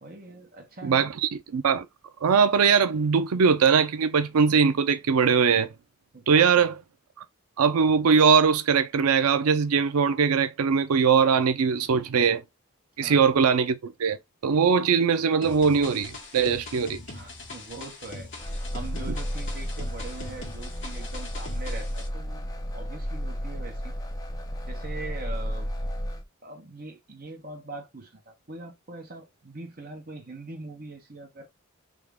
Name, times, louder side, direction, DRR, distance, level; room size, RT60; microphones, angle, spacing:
voice 1, 0.0-1.1 6.1-6.7 13.0-13.2 17.1-18.3 18.7-22.4 22.7-23.9 24.7-25.7 26.4-31.5, right 2 dB, 40° right, 1.1 m, -42 dB
voice 2, 0.8-1.9 2.2-5.7 6.3-6.7 7.6-12.4 13.0-14.2 14.4-17.0, right 6 dB, 85° right, 0.5 m, -21 dB
sound 1, 15.4-22.1, left 2 dB, 55° left, 1.3 m, -42 dB
sound 2, 18.4-26.2, equal, 15° left, 0.6 m, -33 dB
3.6 x 2.9 x 3.5 m
head